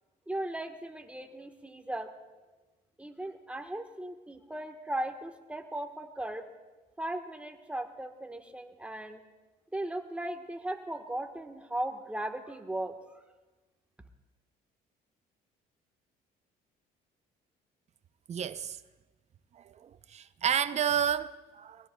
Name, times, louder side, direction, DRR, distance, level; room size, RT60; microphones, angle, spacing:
voice 1, 0.3-2.1 3.0-6.5 7.0-9.2 9.7-12.9, right 1 dB, 5° right, 1.3 m, -37 dB
voice 2, 18.3-18.8 19.5-21.9, right 8 dB, 40° right, 0.6 m, -31 dB
22.5 x 16.5 x 2.3 m
cardioid pair, 110°, 17 cm